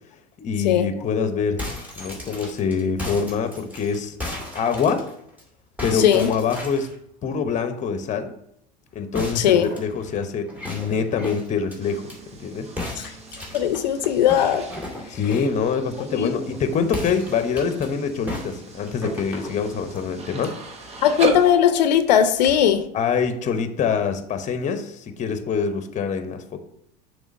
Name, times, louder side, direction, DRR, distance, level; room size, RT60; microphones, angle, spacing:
voice 1, 0.4-1.6 2.0-5.1 5.8-6.9 7.2-8.3 8.9-12.1 12.4-12.7 15.1-20.5 22.9-26.6, left 6 dB, 35° left, 9 dB, 0.9 m, -25 dB
sound 1, 1.6-5.4 5.8-7.0 9.1-12.2 12.8-15.6 16.9-17.9 18.3-20.1, left 2 dB, 5° right, 2.2 m, -35 dB
voice 2, 5.9-6.3 9.4-9.7 13.5-14.6 16.1-16.3 21.0-22.8, left 9 dB, 85° left, 10 dB, 0.6 m, -18 dB
sound 2, 11.8-21.5, right 2 dB, 30° right, 1.2 m, -35 dB
7.0 x 3.3 x 5.3 m, 0.72 s
hypercardioid pair, 95°, 21 cm